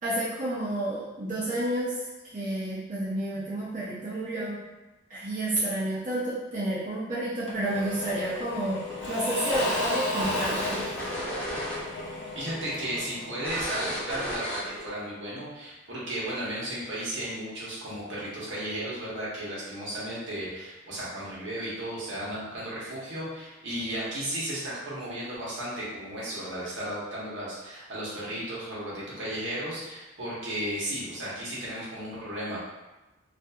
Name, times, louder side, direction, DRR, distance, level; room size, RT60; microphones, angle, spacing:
voice 1, 0.0-4.6 5.1-10.8, right 1 dB, 40° right, -11 dB, 0.6 m, -30 dB
Engine / Mechanisms / Drill, 7.5-14.1, left 2 dB, 60° left, 0.6 m, -34 dB
sound 1, 8.4-12.0 12.3-12.5 13.0-13.1 13.4-14.9, equal, 5° left, 0.5 m, -34 dB
voice 2, 12.3-32.6, right 1 dB, 70° right, -7 dB, 0.9 m, -34 dB
2.7 x 2.5 x 2.3 m, 1.1 s
head